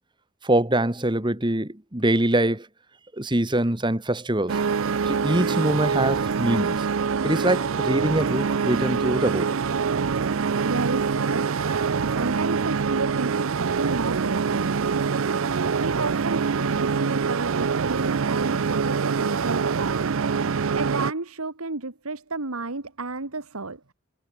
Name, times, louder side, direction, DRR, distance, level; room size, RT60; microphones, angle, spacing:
voice 1, 0.4-2.7 3.2-4.6 5.1-6.9 7.2-9.5 12.1-12.2, right 1 dB, 20° right, 1.6 m, -24 dB
sound 1, 4.5-21.1, right 5 dB, 70° right, 0.5 m, -25 dB
voice 2, 10.6-15.1 15.8-20.5 20.8-23.9, right 3 dB, 85° right, 2.0 m, -32 dB
head